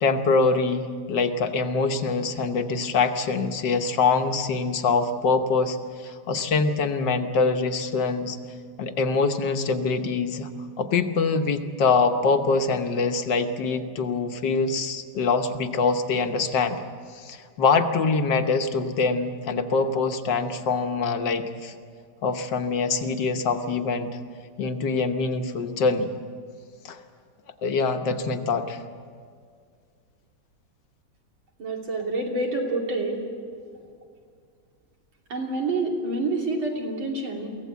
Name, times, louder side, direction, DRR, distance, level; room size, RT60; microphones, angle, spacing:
voice 1, 0.0-5.8 6.0-8.4 8.8-10.5 10.8-16.8 17.1-21.7 22.2-24.2 24.6-26.1 26.8-27.0 27.6-28.8, left 4 dB, 65° left, 6 dB, 1.7 m, -24 dB
voice 2, 31.6-33.2 35.3-37.5, right 2 dB, 75° right, 0 dB, 3.8 m, -27 dB
23.0 x 17.0 x 8.2 m, 2.1 s
omnidirectional pair, 2.2 m